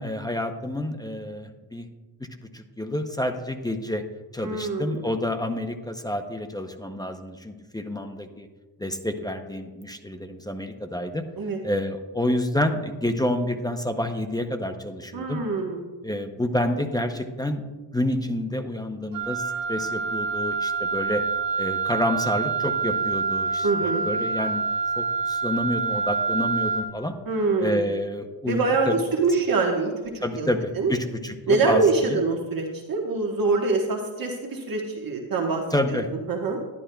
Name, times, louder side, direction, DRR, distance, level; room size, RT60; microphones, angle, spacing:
voice 1, 0.0-1.9 2.4-4.0 4.3-8.5 8.8-11.2 11.6-15.4 16.0-17.6 17.9-21.2 21.6-24.6 25.0-27.2 27.6-28.6 28.9-29.0 30.2-32.2 35.7-36.1, left 1 dB, 10° left, 6 dB, 0.6 m, -28 dB
voice 2, 4.4-5.1 11.4-11.6 15.1-15.8 23.6-24.0 27.2-27.8 28.4-30.5 30.8-30.9 31.5-35.6 36.3-36.6, right 3 dB, 45° right, 1 dB, 1.2 m, -24 dB
Wind instrument woodwind instrument, 19.1-26.9, right 4 dB, 65° right, 1.2 m, -27 dB
11.5 x 11.0 x 2.2 m, 1.2 s
cardioid pair, 100°, 47 cm